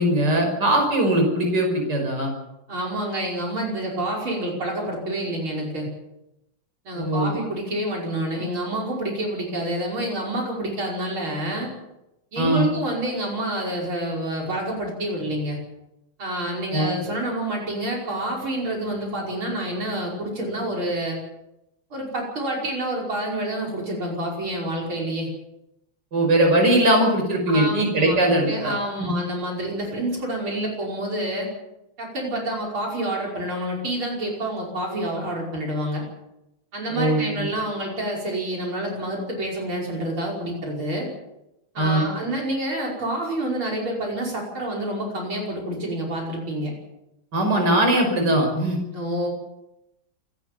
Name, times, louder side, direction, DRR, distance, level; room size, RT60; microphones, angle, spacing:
voice 1, 0.0-2.3 6.9-7.3 12.4-12.7 16.7-16.9 26.1-28.7 29.0-29.1 36.9-37.5 41.8-42.0 47.3-48.8, right 1 dB, 50° right, 2 dB, 6.2 m, -20 dB
voice 2, 2.7-5.9 6.8-11.7 12.3-15.6 16.2-21.2 21.9-25.3 27.5-28.2 28.5-31.5 32.0-36.0 36.7-41.1 41.7-46.7 48.9-49.3, right 1 dB, 70° right, -2 dB, 6.3 m, -28 dB
28.5 x 13.5 x 7.6 m, 0.89 s
omnidirectional pair, 2.3 m